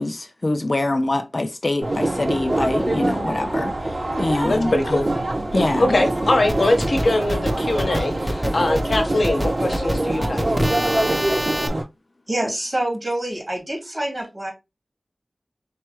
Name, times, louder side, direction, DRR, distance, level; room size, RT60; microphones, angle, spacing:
voice 1, 0.0-3.7 4.2-5.0 5.5-6.0, left 2 dB, 50° left, 0.4 m, -24 dB
sound 1, 1.8-11.8, right 1 dB, 70° right, 2.7 m, -24 dB
voice 2, 4.4-5.0 5.5-10.4, left 2 dB, 75° left, 1.1 m, -22 dB
sound 2, 6.5-11.7, equal, 10° right, 0.8 m, -26 dB
voice 3, 12.3-14.5, right 1 dB, 40° right, 2.4 m, -26 dB
4.5 x 3.0 x 2.9 m
wide cardioid pair, 50°, 0 cm